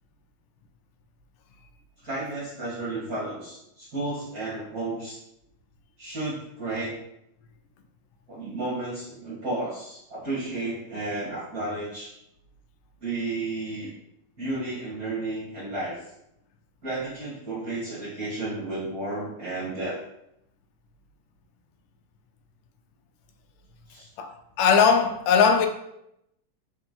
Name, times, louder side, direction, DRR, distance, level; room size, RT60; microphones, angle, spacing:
voice 1, 2.0-5.2 6.0-7.0 8.3-12.1 13.0-13.9 14.4-16.0 16.8-20.0 23.9-24.1, right 2 dB, 40° right, 1.6 m, -32 dB
voice 2, 24.2-25.7, left 6 dB, 85° left, 2.2 m, -20 dB
4.6 x 4.4 x 5.3 m
omnidirectional pair, 3.7 m